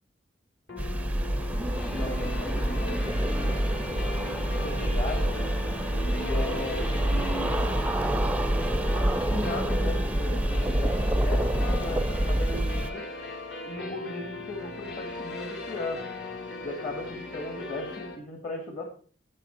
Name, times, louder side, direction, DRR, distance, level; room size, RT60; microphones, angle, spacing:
sound 1, 0.7-18.2, left 3 dB, 65° left, 2.8 m, -38 dB
sound 2, 0.8-12.9, right 1 dB, 5° right, 0.5 m, -27 dB
voice 1, 1.9-3.9 4.5-5.4 6.0-7.8 9.2-13.1 13.7-16.1 16.6-18.8, left 2 dB, 40° left, 1 dB, 1.8 m, -37 dB
10.5 x 9.1 x 4.4 m, 0.43 s
head